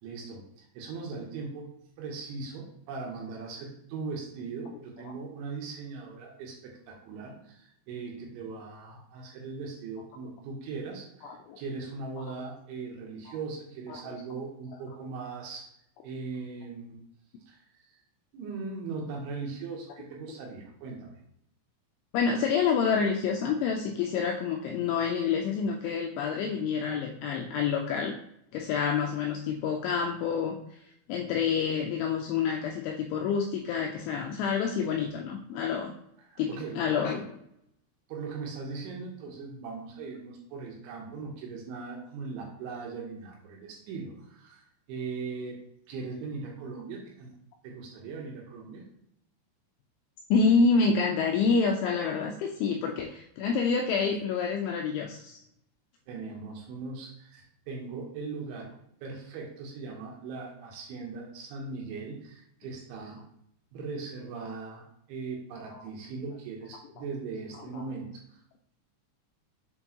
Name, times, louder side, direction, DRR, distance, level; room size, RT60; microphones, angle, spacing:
voice 1, 0.0-1.7 2.0-15.7 16.0-17.0 17.5-17.9 18.3-21.2 36.2-36.8 38.1-45.6 45.9-47.3 47.6-48.8 56.1-58.7 59.0-63.2 63.7-68.4, right 4 dB, 75° right, -1 dB, 3.1 m, -39 dB
voice 2, 11.2-11.6 13.9-14.0 22.1-28.2 28.5-30.6 31.1-35.9 36.4-36.5 36.8-37.4 50.3-55.4 67.7-67.8, left 5 dB, 85° left, 2 dB, 2.7 m, -27 dB
7.3 x 4.5 x 2.9 m, 0.74 s
omnidirectional pair, 5.9 m